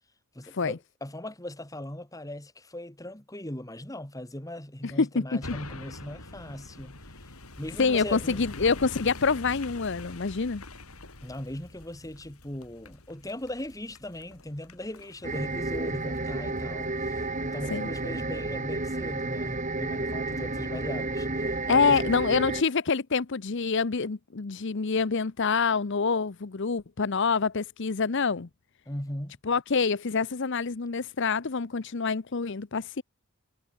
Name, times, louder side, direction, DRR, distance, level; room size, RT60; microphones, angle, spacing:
voice 1, 0.3-7.0 7.6-8.4 11.2-22.0 28.9-29.4, left 1 dB, 15° left, 2.4 m, -39 dB
voice 2, 4.8-5.6 7.8-10.6 17.7-17.9 21.7-28.5 29.5-33.0, left 5 dB, 55° left, 0.7 m, -26 dB
sound 1, 5.4-16.9 17.3-17.4, left 2 dB, 85° left, 5.9 m, -45 dB
sound 2, 15.2-22.6, right 2 dB, 35° right, 2.5 m, -31 dB
head